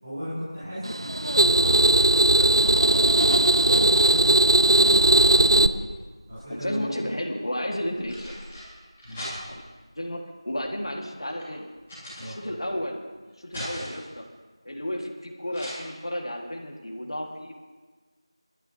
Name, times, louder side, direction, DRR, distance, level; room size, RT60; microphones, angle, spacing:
voice 1, 0.0-5.8 6.3-6.9 9.0-9.2 12.2-12.3, equal, 15° right, -13 dB, 4.6 m, -37 dB
sound 1, 0.8-5.7, right 1 dB, 55° right, 0.5 m, -18 dB
sound 2, 6.0-6.8 7.7-9.8 10.5-12.7 13.1-14.2 15.5-15.7, equal, 10° left, 2.2 m, -40 dB
voice 2, 6.5-8.3 9.5-9.6 10.0-11.7 12.2-13.0 13.4-14.2 14.7-17.5, equal, 65° left, 1 dB, 2.0 m, -32 dB
22.5 x 12.5 x 2.9 m, 1.4 s
figure-of-eight pair, 180°, 3 cm